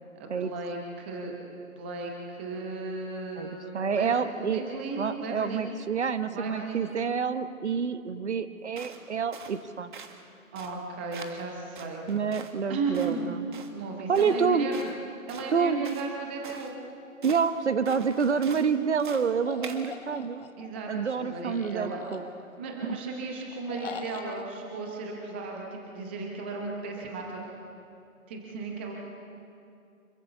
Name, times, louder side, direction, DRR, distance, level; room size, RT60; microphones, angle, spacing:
voice 1, 0.1-1.3 1.8-5.7 6.3-6.8 10.5-12.0 12.7-13.4 13.7-14.9 15.3-16.8 20.6-20.9 21.2-22.0 22.6-27.5 28.3-28.9, right 4 dB, 10° right, 0 dB, 0.8 m, -35 dB
voice 2, 3.4-4.6 5.0-9.9 12.1-13.5 14.1-14.7 15.5-16.0 17.2-20.5 20.9-22.2 22.8-23.0, right 6 dB, 50° right, 12 dB, 1.0 m, -28 dB
sound 1, 8.8-9.0 9.3-9.6 9.9-10.2 10.5-10.8 11.1-11.5 11.7-12.6 12.9-13.2 13.5-13.7 14.1-14.4 14.7-15.0 15.3-16.1 16.4-16.7 17.2-17.5 17.8-18.7 19.0-19.3 19.6-19.9, right 6 dB, 35° right, 1.5 m, -45 dB
sound 2, 19.5-20.8 21.5-22.6 23.7-24.5, left 6 dB, 40° left, 1.1 m, -42 dB
26.0 x 14.5 x 7.0 m, 2.5 s
figure-of-eight pair, 155°, 43 cm